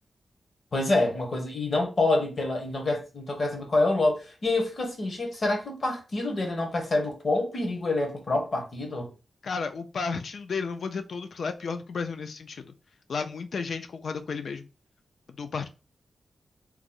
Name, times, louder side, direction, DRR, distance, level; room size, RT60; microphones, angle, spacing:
voice 1, 0.7-9.1, left 2 dB, 45° left, 1.0 m, -27 dB
voice 2, 9.4-12.6 13.1-14.7 15.3-15.7, left 5 dB, 65° left, 0.4 m, -33 dB
2.9 x 2.0 x 3.7 m
wide cardioid pair, 150°, 0 cm